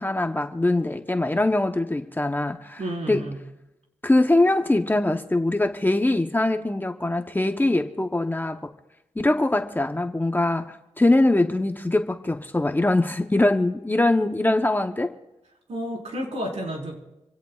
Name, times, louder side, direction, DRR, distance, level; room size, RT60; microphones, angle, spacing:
voice 1, 0.0-3.3 4.0-8.7 9.2-15.1, left 2 dB, 15° left, 5 dB, 0.8 m, -22 dB
voice 2, 2.8-3.4 15.7-17.0, equal, 70° right, -1 dB, 4.4 m, -31 dB
26.5 x 17.0 x 2.4 m, 0.95 s
cardioid pair, 75°, 12 cm